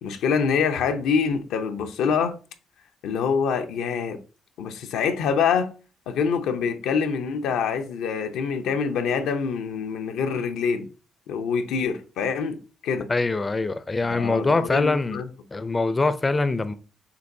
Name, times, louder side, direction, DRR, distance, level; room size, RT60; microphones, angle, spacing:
voice 1, 0.0-2.3 3.0-4.2 4.6-5.7 6.1-10.9 11.3-12.6 12.8-13.1 14.1-15.3, left 6 dB, 85° left, 0.6 m, -25 dB
voice 2, 13.1-15.2 15.5-16.7, left 3 dB, 25° left, 0.4 m, -23 dB
6.8 x 2.5 x 2.6 m
cardioid pair, 90°, 0 cm